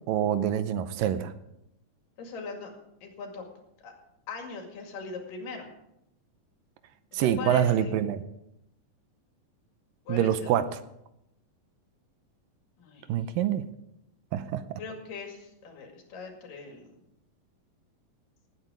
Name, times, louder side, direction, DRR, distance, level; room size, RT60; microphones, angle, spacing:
voice 1, 0.1-1.3 7.1-8.2 10.1-10.8 13.1-13.7 14.3-14.8, right 10 dB, 80° right, 12 dB, 2.3 m, -26 dB
voice 2, 2.2-2.7 3.0-3.4 3.8-3.9 4.3-5.7 7.1-7.9 10.1-10.6 12.8-13.4 14.8-16.9, left 4 dB, 70° left, 3 dB, 3.8 m, -40 dB
18.0 x 9.0 x 5.1 m, 0.82 s
omnidirectional pair, 4.1 m